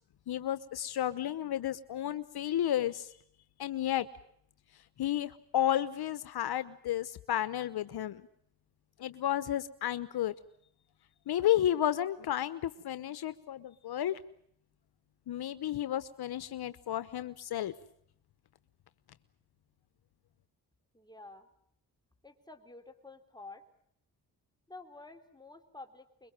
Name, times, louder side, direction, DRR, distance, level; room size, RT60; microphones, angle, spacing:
voice 1, 0.3-3.1 3.6-4.1 5.0-8.2 9.0-10.3 11.3-14.2 15.3-17.7, left 11 dB, 70° left, 14 dB, 1.0 m, -32 dB
voice 2, 20.9-21.5 22.2-23.6 24.7-26.3, left 3 dB, 10° left, 4 dB, 4.0 m, -50 dB
25.5 x 22.5 x 7.5 m, 0.69 s
cardioid pair, 70°, 39 cm